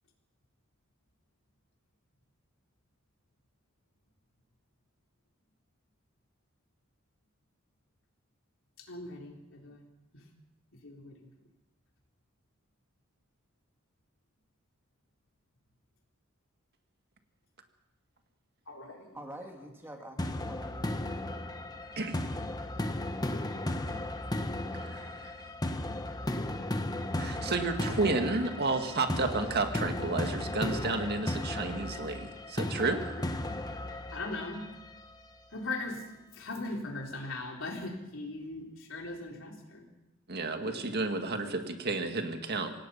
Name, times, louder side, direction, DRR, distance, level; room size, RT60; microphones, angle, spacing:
voice 1, 8.9-9.8 10.1-10.2 10.8-11.3 18.7-19.1 28.7-28.8 33.2-33.3 34.1-34.6 35.5-36.0 36.3-39.8 40.6-41.5, left 2 dB, 65° left, 1 dB, 4.0 m, -40 dB
voice 2, 19.1-21.3, right 1 dB, 10° right, 3 dB, 1.9 m, -47 dB
sound 1, 20.2-35.1, left 1 dB, 20° left, 1.1 m, -35 dB
voice 3, 24.8-25.2 27.2-33.0 40.3-42.7, right 3 dB, 50° right, 6 dB, 1.9 m, -31 dB
26.5 x 17.5 x 5.7 m, 0.96 s
head